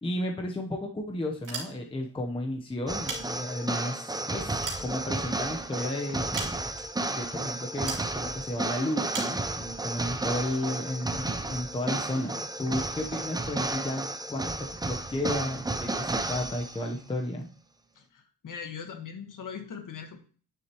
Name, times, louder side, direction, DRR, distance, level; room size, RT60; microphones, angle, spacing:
voice 1, 0.0-6.6 7.1-17.5, left 1 dB, 15° left, 2 dB, 0.8 m, -33 dB
sound 1, 1.3-2.1 2.8-3.8 4.3-5.5 6.3-7.0 7.9-8.1 9.1-9.4, right 4 dB, 45° right, 2.7 m, -38 dB
sound 2, 2.9-16.9, right 2 dB, 10° right, 0.5 m, -33 dB
voice 2, 17.9-20.2, left 7 dB, 50° left, 5 dB, 1.4 m, -40 dB
9.7 x 6.6 x 3.0 m, 0.41 s
cardioid pair, 140°, 42 cm